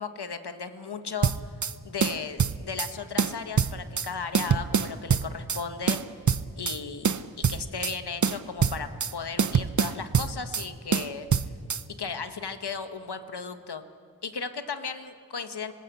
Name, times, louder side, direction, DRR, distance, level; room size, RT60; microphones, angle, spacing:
voice 1, 0.0-1.3 1.8-6.0 6.6-11.3 11.9-13.8 14.2-15.7, left 5 dB, 85° left, 9 dB, 1.4 m, -36 dB
sound 1, 1.2-1.7 2.0-2.9 3.2-4.1 4.3-5.6 5.9-6.8 7.0-7.9 8.2-9.1 9.4-10.7 10.9-11.8, right 6 dB, 50° right, 0.7 m, -25 dB
25.5 x 19.5 x 8.2 m, 2.3 s
wide cardioid pair, 65°, 39 cm